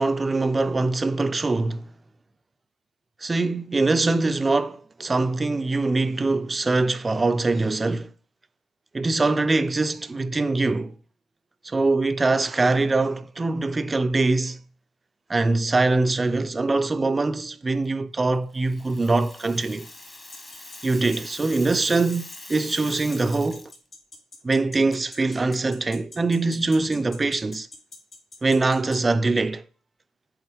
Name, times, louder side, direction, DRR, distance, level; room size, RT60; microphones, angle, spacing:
voice 1, 0.0-1.9 3.2-8.1 8.9-11.0 11.6-14.6 15.3-19.9 20.8-23.7 24.4-27.7 28.4-29.6, right 3 dB, 25° right, 0.5 m, -23 dB
Rattle (instrument), 18.5-23.8, left 2 dB, 20° left, 1.3 m, -42 dB
sound 1, 20.3-29.0, left 3 dB, 40° left, 2.7 m, -43 dB
8.1 x 3.7 x 3.5 m
hypercardioid pair, 60°, 0 cm